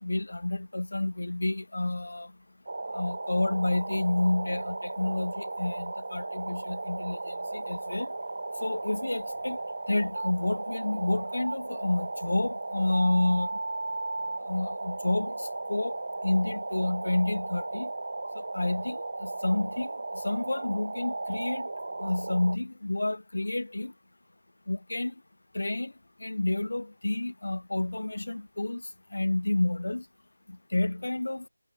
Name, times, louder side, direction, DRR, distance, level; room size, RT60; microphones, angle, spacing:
voice 1, 0.0-2.3 2.9-8.1 8.6-9.6 9.9-13.5 14.5-16.0 16.2-17.9 18.4-21.7 22.0-23.9 24.7-25.1 25.5-25.9 26.2-30.0 30.5-31.5, left 2 dB, 55° left, 0.4 m, -29 dB
sound 1, 2.7-22.6, right 2 dB, 45° right, 0.7 m, -35 dB
figure-of-eight pair, 175°, 0 cm